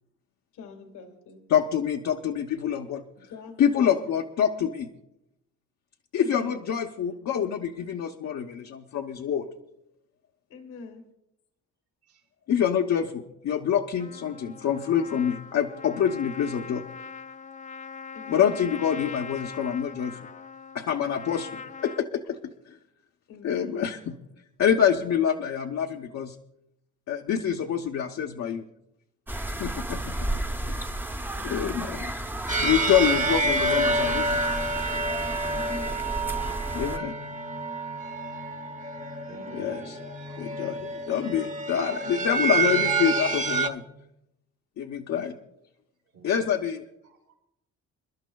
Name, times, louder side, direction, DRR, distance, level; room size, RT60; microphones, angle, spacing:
voice 1, 0.5-1.4 3.2-4.1 6.2-6.7 10.5-11.1 18.1-18.6 23.3-23.8 31.3-31.8 35.5-36.0, left 4 dB, 85° left, 5 dB, 1.9 m, -44 dB
voice 2, 1.5-3.0 3.6-4.9 6.1-9.5 12.5-16.8 18.3-20.2 20.7-22.4 22.7-22.8 23.4-24.2 24.6-26.3 27.1-28.6 29.6-30.3 30.6-30.9 31.4-32.1 32.6-34.4 36.7-37.1 39.5-40.0 40.4-43.8 44.8-45.3 46.2-46.8, left 8 dB, 65° left, 2 dB, 0.9 m, -26 dB
Trumpet, 14.0-22.0, left 5 dB, 25° left, 0.4 m, -41 dB
sound 1, 29.3-37.0, right 1 dB, 5° right, 0.7 m, -33 dB
sound 2, 32.5-43.7, right 2 dB, 25° right, 1.0 m, -28 dB
voice 3, 39.1-40.4 46.1-46.5 47.0-47.4, right 2 dB, 80° right, -1 dB, 5.5 m, -49 dB
29.0 x 11.5 x 2.3 m, 0.85 s
cardioid pair, 90°, 30 cm